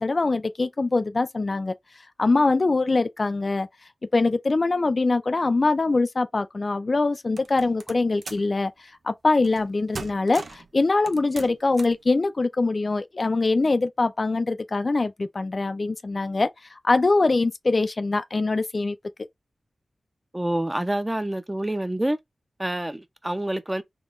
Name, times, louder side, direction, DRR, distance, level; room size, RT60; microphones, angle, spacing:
voice 1, 0.0-1.7 2.2-3.7 4.1-19.0, left 3 dB, 50° left, 0.4 m, -23 dB
sound 1, 7.4-8.5 9.4-9.7 9.9-10.7 11.1-12.0, right 4 dB, 70° right, 0.6 m, -39 dB
voice 2, 20.3-22.2 22.6-23.8, right 1 dB, 15° right, 0.7 m, -27 dB
3.7 x 2.9 x 2.5 m
cardioid pair, 60°, 0 cm